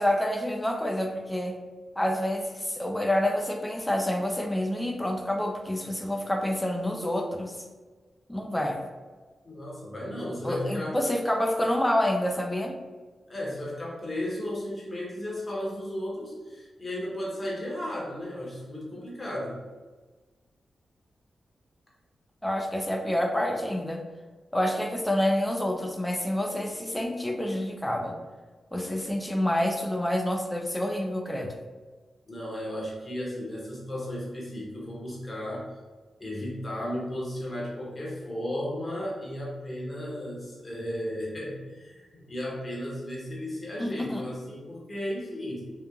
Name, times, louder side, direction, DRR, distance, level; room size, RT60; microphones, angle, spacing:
voice 1, 0.0-1.6 2.0-7.6 8.3-8.8 10.4-12.7 22.4-24.0 24.5-28.1 28.7-31.5 43.8-44.3, left 1 dB, 10° left, 2 dB, 0.4 m, -28 dB
voice 2, 9.4-11.0 13.3-19.6 32.3-35.7 36.2-45.6, left 1 dB, 35° left, -5 dB, 1.0 m, -34 dB
3.1 x 2.1 x 2.3 m, 1.3 s
supercardioid pair, 45°, 0 cm